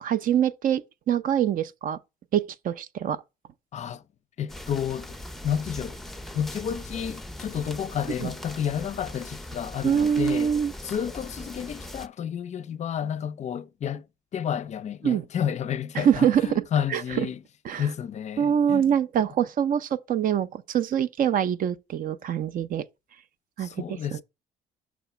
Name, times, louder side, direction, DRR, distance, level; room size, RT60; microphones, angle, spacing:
voice 1, 0.0-2.0 2.3-3.2 8.2-8.3 9.8-10.7 15.0-15.2 15.9-16.6 16.9-17.3 17.6-17.9 18.4-22.8 23.6-24.0, right 9 dB, 55° right, 0.7 m, -24 dB
voice 2, 3.7-4.0 4.4-5.2 5.4-6.0 6.3-10.6 10.8-14.0 14.3-17.4 17.8-18.8 23.6-24.2, left 8 dB, 45° left, 0.5 m, -31 dB
sound 1, 4.5-12.1, left 1 dB, ahead, 0.6 m, -40 dB
6.2 x 2.9 x 5.6 m
cardioid pair, 110°, 17 cm